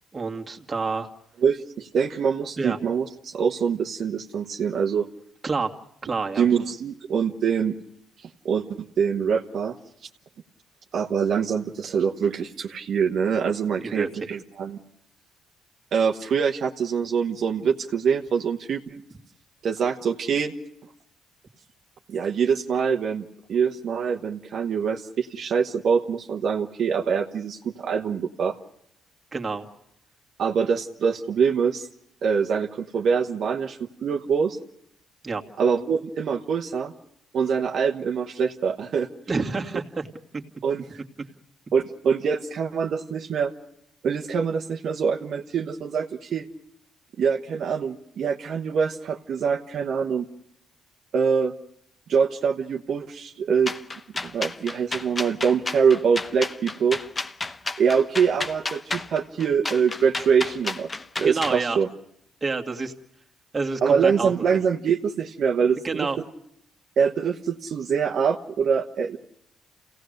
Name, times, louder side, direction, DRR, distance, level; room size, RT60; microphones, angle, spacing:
voice 1, 0.1-1.1 2.6-2.8 5.4-5.7 6.0-6.5 13.8-14.1 29.3-29.7 35.2-35.4 39.3-40.1 61.2-61.8 62.4-62.9 63.5-64.6 65.8-66.2, right 4 dB, 30° right, 2 dB, 2.1 m, -28 dB
voice 2, 1.4-5.1 6.4-7.7 8.2-8.6 9.0-9.7 10.9-14.8 15.9-19.0 19.6-20.5 22.1-28.6 30.4-31.9 32.2-34.6 35.6-36.9 37.3-39.1 40.6-41.0 41.7-43.5 44.0-46.5 47.2-50.3 51.1-51.5 52.1-53.7 54.2-57.0 57.8-60.9 61.2-61.9 63.8-66.1 67.0-69.2, right 6 dB, 60° right, 2 dB, 1.2 m, -24 dB
sound 1, 53.7-61.6, left 3 dB, 25° left, 0.9 m, -31 dB
28.5 x 17.5 x 6.5 m, 0.78 s
cardioid pair, 90°, 0 cm